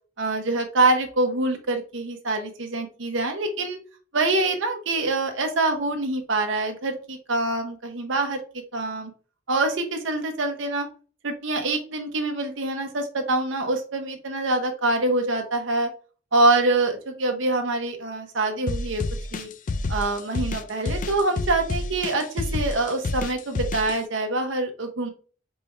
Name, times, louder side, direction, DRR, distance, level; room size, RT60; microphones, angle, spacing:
voice 1, 0.2-3.8 4.1-8.4 8.7-9.1 9.5-10.9 11.2-15.9 16.3-19.0 19.3-19.5 19.9-25.1, right 2 dB, 70° right, 4 dB, 0.9 m, -25 dB
sound 1, 18.7-24.0, left 2 dB, 45° left, 0.4 m, -29 dB
4.4 x 3.3 x 3.3 m, 0.39 s
head